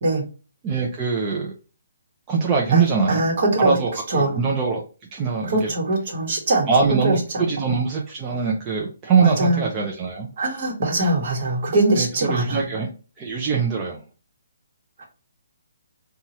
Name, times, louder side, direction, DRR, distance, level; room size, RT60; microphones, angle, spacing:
voice 1, 0.6-1.5 2.3-3.2 3.6-4.8 5.1-5.7 6.7-10.3 11.9-12.9 13.2-14.0, right 5 dB, 20° right, -1 dB, 0.5 m, -22 dB
voice 2, 2.7-3.8 4.1-4.4 5.4-7.4 9.2-9.7 10.4-12.6 15.0-15.1, right 2 dB, 50° right, 0 dB, 1.2 m, -22 dB
2.8 x 2.3 x 2.8 m, 0.34 s
hypercardioid pair, 155°, 0 cm